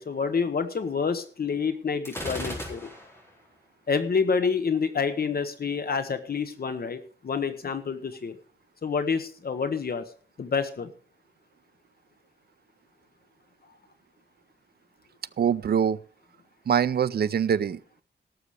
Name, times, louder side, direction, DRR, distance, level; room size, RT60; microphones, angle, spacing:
voice 1, 0.0-2.9 3.9-8.4 8.8-10.0 10.4-10.9, left 5 dB, 55° left, 9 dB, 1.0 m, -28 dB
Gunshot gunfire, 2.1-3.3, left 1 dB, 15° left, 4.3 m, -36 dB
voice 2, 15.4-16.0 16.7-18.0, right 8 dB, 60° right, 16 dB, 0.5 m, -24 dB
17.5 x 6.8 x 4.9 m, 0.43 s
wide cardioid pair, 160°, 18 cm